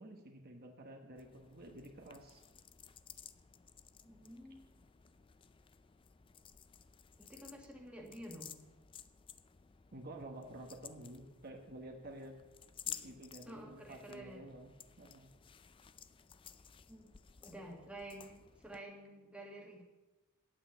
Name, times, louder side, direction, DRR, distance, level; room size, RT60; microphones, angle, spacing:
voice 1, 0.0-2.4 9.9-12.4 12.8-14.7 15.0-15.3, right 1 dB, 45° right, 2 dB, 1.2 m, -51 dB
sound 1, 1.2-18.8, left 8 dB, 25° left, 0.4 m, -54 dB
voice 2, 4.0-4.7 7.2-8.5 13.5-14.5 16.9-17.1 17.4-19.8, right 1 dB, 5° right, -1 dB, 1.7 m, -50 dB
9.6 x 8.8 x 7.9 m, 1.1 s
head